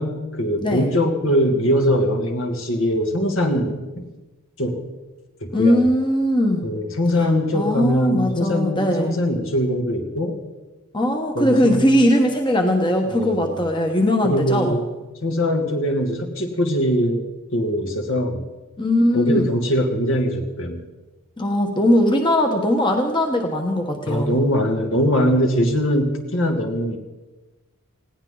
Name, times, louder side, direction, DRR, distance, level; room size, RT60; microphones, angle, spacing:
voice 1, 0.0-4.0 4.6-4.8 5.4-5.8 6.6-10.4 11.3-11.9 13.1-13.6 14.2-14.9 15.2-17.2 17.5-18.4 19.1-20.8 24.1-27.0, equal, 65° left, 3 dB, 2.5 m, -22 dB
voice 2, 5.5-6.7 7.5-9.1 10.9-14.8 18.8-19.5 21.4-24.4, left 1 dB, 20° left, 3 dB, 1.4 m, -19 dB
20.0 x 17.0 x 4.0 m, 1.1 s
head